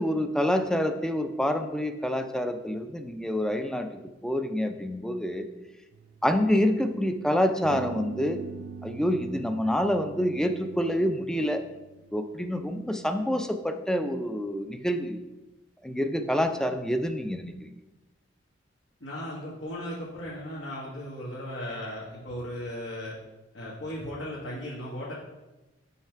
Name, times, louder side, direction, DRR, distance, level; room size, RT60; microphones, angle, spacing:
voice 1, 0.0-5.5 6.2-8.4 8.8-11.6 12.1-15.2 15.8-17.7, equal, 5° left, 7 dB, 0.4 m, -27 dB
sound 1, 5.9-7.1 7.6-12.8, right 5 dB, 90° right, 0.3 m, -44 dB
voice 2, 19.0-23.1 23.5-25.1, equal, 85° left, -6 dB, 1.4 m, -36 dB
5.7 x 5.6 x 4.5 m, 1.1 s
head